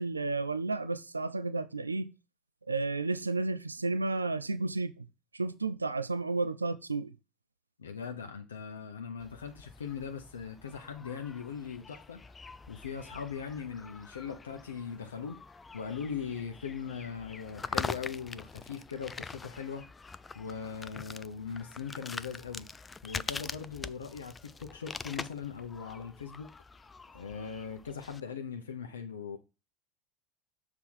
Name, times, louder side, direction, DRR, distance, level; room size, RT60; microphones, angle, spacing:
voice 1, 0.0-2.1 2.7-5.0 5.3-7.1, right 3 dB, 85° right, 0.4 m, -32 dB
voice 2, 7.8-12.2 12.7-15.4 15.7-19.9 20.3-22.7 23.0-26.5 27.1-29.4, left 6 dB, 75° left, 0.7 m, -40 dB
sound 1, 9.2-28.2, left 4 dB, 20° left, 0.3 m, -44 dB
7.0 x 3.6 x 5.9 m
figure-of-eight pair, 75°, 0 cm